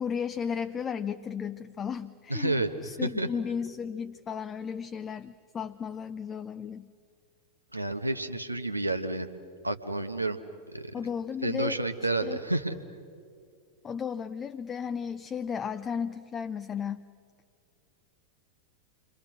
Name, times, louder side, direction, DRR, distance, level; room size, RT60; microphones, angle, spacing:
voice 1, 0.0-6.9 10.9-11.8 12.2-12.4 13.8-17.0, left 7 dB, 25° left, 10 dB, 0.6 m, -34 dB
voice 2, 2.3-2.7 3.0-3.3 7.7-9.3 9.6-10.4 10.7-10.9 11.4-12.7, right 2 dB, 85° right, 7 dB, 1.3 m, -30 dB
29.0 x 24.5 x 6.3 m, 2.3 s
figure-of-eight pair, 90°, 0 cm